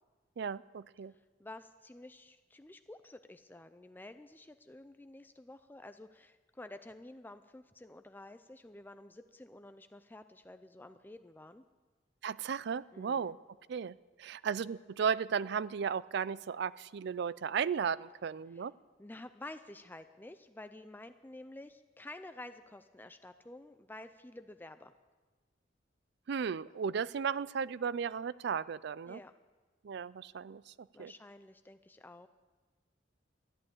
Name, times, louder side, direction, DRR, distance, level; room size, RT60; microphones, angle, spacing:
voice 1, 0.4-1.1 12.2-13.4 13.7-18.7 26.3-29.2 29.8-31.1, right 6 dB, 60° right, 19 dB, 0.4 m, -35 dB
voice 2, 1.1-11.6 12.9-13.4 14.3-14.4 18.5-18.7 19.0-24.9 29.1-29.3 30.9-32.3, left 2 dB, 10° left, 9 dB, 0.4 m, -51 dB
13.0 x 11.5 x 8.5 m, 1.3 s
head